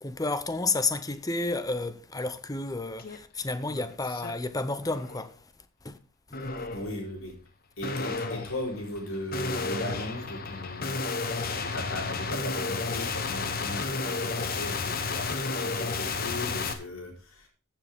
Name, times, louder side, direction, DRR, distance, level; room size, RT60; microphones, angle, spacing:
voice 1, 0.0-5.3 5.8-6.0, left 3 dB, 15° left, 0.7 m, -31 dB
sound 1, 3.0-3.2 3.6-4.3 4.8-5.3 6.3-6.9 7.8-16.7, left 4 dB, 45° left, 1.1 m, -32 dB
voice 2, 6.7-7.3 7.8-11.0 11.6-17.5, left 1 dB, 75° left, 4.2 m, -37 dB
14.5 x 7.4 x 3.6 m
head